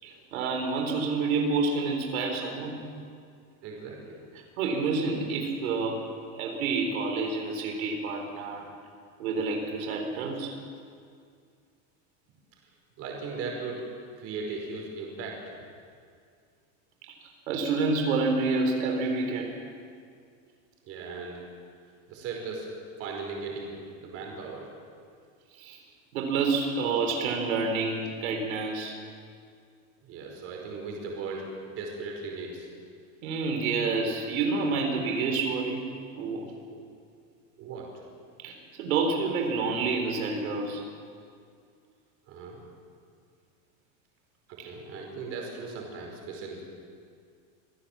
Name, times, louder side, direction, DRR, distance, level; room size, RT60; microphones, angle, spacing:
voice 1, 0.0-2.8 4.4-8.7 9.2-10.6 17.0-17.2 17.5-19.5 25.5-25.8 26.1-29.0 33.2-36.5 38.4-40.9, right 4 dB, 90° right, 3 dB, 4.0 m, -28 dB
voice 2, 3.6-4.2 13.0-13.8 14.2-15.4 20.8-21.4 22.1-22.7 23.0-23.7 24.0-24.7 30.0-32.7 36.7-36.8 37.6-37.9 42.3-42.7 44.5-46.6, right 4 dB, 35° right, 0 dB, 5.0 m, -37 dB
26.0 x 16.0 x 7.4 m, 2.2 s
supercardioid pair, 170°, 41 cm